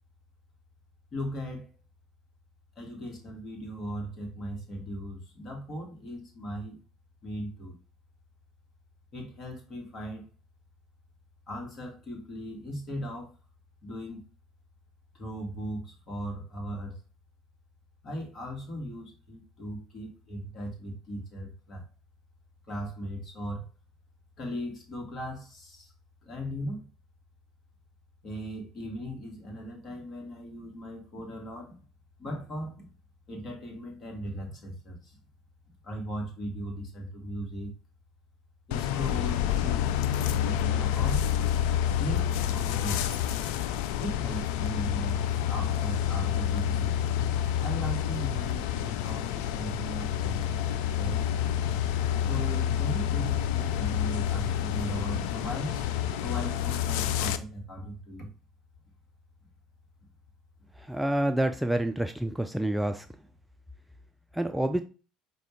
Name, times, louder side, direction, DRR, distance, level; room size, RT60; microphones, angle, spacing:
voice 1, 1.1-1.7 2.8-6.8 7.2-7.8 9.1-10.2 11.5-13.3 13.8-14.3 15.1-17.0 18.0-21.8 22.7-23.7 24.4-25.9 26.2-26.9 28.2-31.8 32.2-32.9 33.3-35.2 35.8-37.7 38.7-41.2 41.6-43.3 44.0-47.0 47.6-50.6 51.0-51.3 52.2-55.8 56.2-58.3, equal, 45° left, 1.8 m, -38 dB
sound 1, 38.7-57.4, left 10 dB, 70° left, 0.3 m, -28 dB
voice 2, 60.8-63.1 64.3-64.8, right 1 dB, 5° right, 0.4 m, -28 dB
5.1 x 2.8 x 3.2 m
hypercardioid pair, 65°, 0 cm